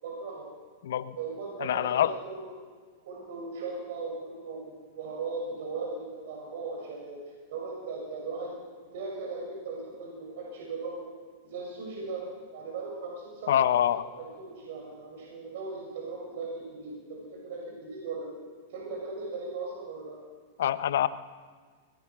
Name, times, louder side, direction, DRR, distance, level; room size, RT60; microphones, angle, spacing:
voice 1, 0.0-0.4 1.1-2.4 3.0-4.6 4.9-7.2 7.5-8.5 8.9-11.0 11.5-12.2 12.5-13.8 14.2-18.3 18.7-20.2, right 4 dB, 70° right, -2 dB, 6.9 m, -38 dB
voice 2, 0.8-1.2 1.6-2.2 13.5-14.1 20.6-21.1, left 11 dB, 80° left, 14 dB, 1.0 m, -25 dB
23.0 x 20.0 x 6.2 m, 1.5 s
hypercardioid pair, 135°, 0 cm